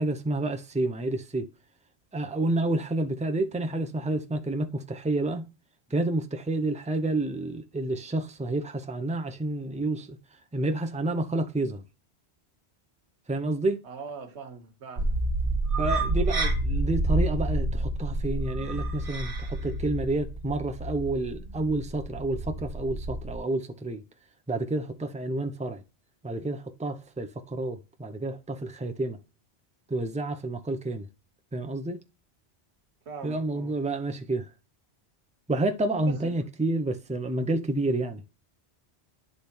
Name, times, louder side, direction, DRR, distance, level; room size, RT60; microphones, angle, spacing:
voice 1, 0.0-1.5 2.1-5.5 5.9-10.2 10.5-11.8 13.3-13.8 15.8-24.0 24.5-25.8 26.2-29.2 29.9-31.1 31.5-32.0 33.2-34.5 35.5-38.2, right 2 dB, 10° right, 0.5 m, -29 dB
voice 2, 13.8-15.1 33.1-33.7 35.9-36.3, right 5 dB, 90° right, 1.4 m, -41 dB
sound 1, 15.0-23.4, right 2 dB, 55° right, 1.4 m, -29 dB
10.0 x 3.4 x 4.4 m
omnidirectional pair, 1.1 m